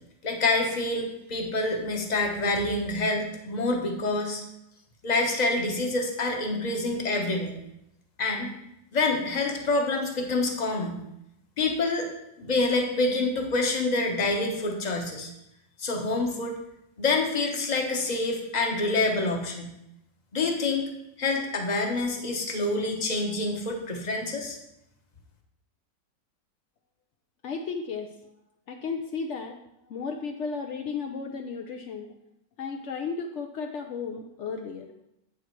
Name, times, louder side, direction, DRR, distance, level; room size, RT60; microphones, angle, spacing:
voice 1, 0.2-4.4 5.0-7.5 8.2-8.5 8.9-11.0 11.6-12.1 12.4-15.3 15.8-16.6 17.0-19.7 20.3-20.8 21.2-24.6, left 2 dB, 30° left, 2 dB, 0.8 m, -27 dB
voice 2, 27.4-28.1 28.7-29.6 29.8-32.2 32.6-34.9, left 5 dB, 80° left, 3 dB, 0.6 m, -34 dB
8.1 x 5.0 x 4.5 m, 0.82 s
omnidirectional pair, 1.9 m